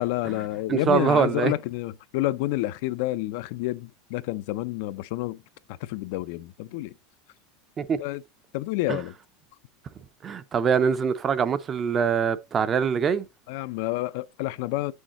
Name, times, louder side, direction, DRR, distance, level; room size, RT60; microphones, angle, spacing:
voice 1, 0.0-5.4 5.8-6.9 8.0-8.2 8.5-9.1 13.5-14.9, left 17 dB, 60° left, 0.4 m, -29 dB
voice 2, 0.7-1.5 7.8-8.0 8.9-9.0 10.2-13.2, right 7 dB, 20° right, 0.5 m, -23 dB
7.1 x 6.4 x 2.9 m
supercardioid pair, 160°, 0 cm